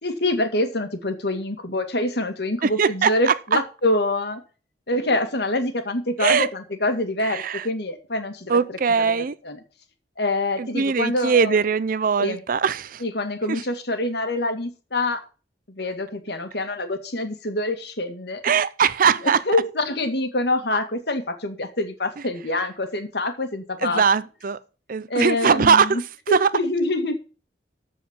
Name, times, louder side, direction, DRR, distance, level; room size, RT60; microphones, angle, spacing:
voice 1, 0.0-4.4 4.9-9.6 10.2-11.6 12.2-12.4 13.0-15.2 15.7-18.4 19.2-24.0 25.1-26.0 26.3-27.2, left 2 dB, 65° left, 2.1 m, -26 dB
voice 2, 2.6-3.6 6.2-6.5 7.2-7.7 8.5-9.4 10.6-13.0 13.5-13.6 18.4-19.4 23.8-24.6 24.9-26.5, right 6 dB, 50° right, 0.5 m, -21 dB
14.0 x 5.0 x 7.2 m
head